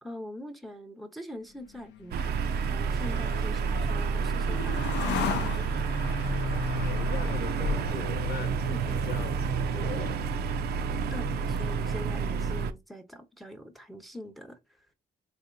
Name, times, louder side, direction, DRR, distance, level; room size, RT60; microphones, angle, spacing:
voice 1, 0.0-5.7 8.7-9.0 11.1-14.9, left 1 dB, ahead, 0.6 m, -43 dB
sound 1, 1.7-9.1, left 6 dB, 85° left, 0.5 m, -36 dB
sound 2, 2.1-12.7, right 5 dB, 65° right, 0.5 m, -29 dB
voice 2, 6.6-10.2, left 7 dB, 65° left, 0.9 m, -41 dB
4.1 x 2.7 x 2.5 m
cardioid pair, 90°, 18 cm